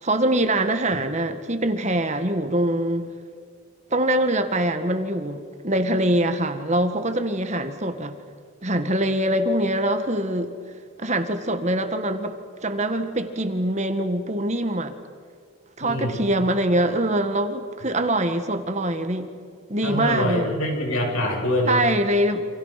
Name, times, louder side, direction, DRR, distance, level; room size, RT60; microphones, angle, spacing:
voice 1, 0.0-3.1 3.9-8.2 8.6-10.5 11.0-12.4 12.6-14.9 15.8-19.3 19.7-20.5 21.7-22.5, right 1 dB, 35° right, 8 dB, 1.8 m, -23 dB
voice 2, 15.8-16.3 19.8-21.8, left 1 dB, 90° left, 1 dB, 7.9 m, -24 dB
29.5 x 27.5 x 6.0 m, 2.1 s
head